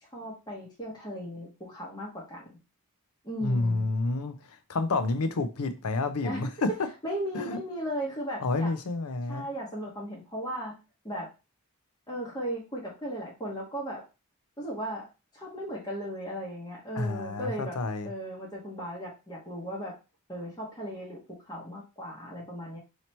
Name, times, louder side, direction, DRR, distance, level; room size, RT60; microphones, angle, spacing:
voice 1, 0.1-2.6 3.2-3.9 6.2-6.5 7.0-8.7 9.3-10.7 11.0-11.3 12.1-14.0 14.6-15.0 15.3-17.8 18.0-19.9 20.3-21.2 21.5-22.8, equal, 20° left, -5 dB, 1.0 m, -36 dB
voice 2, 3.4-6.7 7.3-7.6 8.4-9.5 16.9-18.1, left 3 dB, 70° left, 10 dB, 0.6 m, -29 dB
2.9 x 2.9 x 4.3 m, 0.29 s
head